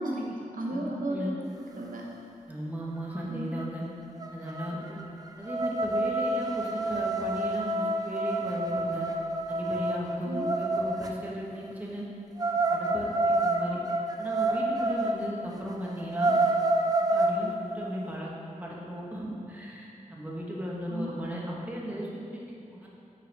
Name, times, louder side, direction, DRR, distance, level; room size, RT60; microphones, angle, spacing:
voice 1, 0.0-1.4 1.7-2.2 3.3-3.6 10.2-10.5 20.9-21.1, right 1 dB, 75° right, -2 dB, 0.8 m, -34 dB
voice 2, 0.7-1.3 2.5-3.8 4.3-5.0 5.4-9.1 9.5-12.0 12.7-13.8 14.2-16.3 17.1-22.9, equal, 10° right, -4 dB, 1.0 m, -36 dB
sound 1, 3.2-3.3 3.5-3.8 4.2-11.1 12.4-15.2 15.6-15.7 16.0-17.4, right 2 dB, 25° right, 0.4 m, -28 dB
5.4 x 3.9 x 5.2 m, 2.6 s
wide cardioid pair, 90°, 14 cm